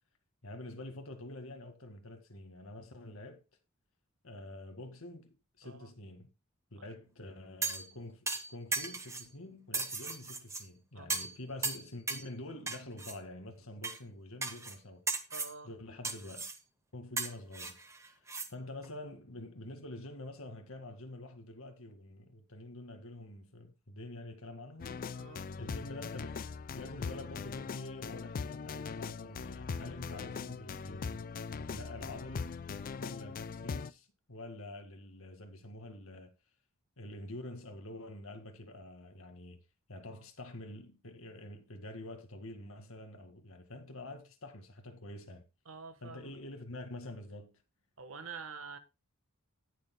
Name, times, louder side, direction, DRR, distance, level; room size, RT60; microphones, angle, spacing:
voice 1, 0.4-3.4 4.2-6.3 6.7-15.0 15.6-16.5 16.9-17.8 18.2-25.1 25.6-26.3 26.7-31.2 31.5-32.5 33.0-36.3 37.0-39.6 39.9-45.4 46.0-47.6, left 1 dB, 70° left, 1.9 m, -47 dB
sound 1, 7.6-7.9 8.3-9.3 9.7-10.6 11.1-11.4 11.6-12.3 12.7-13.1 13.8-14.0 14.4-14.8 15.1-15.5 16.0-16.6 17.2-18.5 18.8-18.9, right 4 dB, 15° right, 1.0 m, -36 dB
voice 2, 10.9-11.3 15.3-15.7 25.1-25.5 45.7-46.4 48.0-48.8, right 5 dB, 65° right, 1.3 m, -47 dB
sound 2, 24.8-33.9, left 5 dB, 40° left, 0.4 m, -41 dB
18.0 x 6.8 x 2.2 m
head